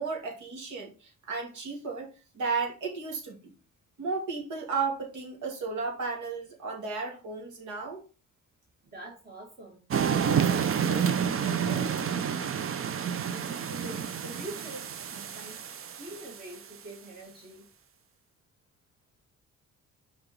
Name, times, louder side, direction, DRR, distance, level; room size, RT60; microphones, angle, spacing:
voice 1, 0.0-2.1 2.3-3.5 4.0-8.0, right 4 dB, 75° right, 2.5 m, -34 dB
voice 2, 8.8-12.5 13.3-15.6 15.9-17.7, right 1 dB, 30° right, 1.8 m, -44 dB
sound 1, 9.9-16.6, right 8 dB, 45° right, 0.7 m, -29 dB
5.9 x 4.0 x 4.3 m
cardioid pair, 90°, 30 cm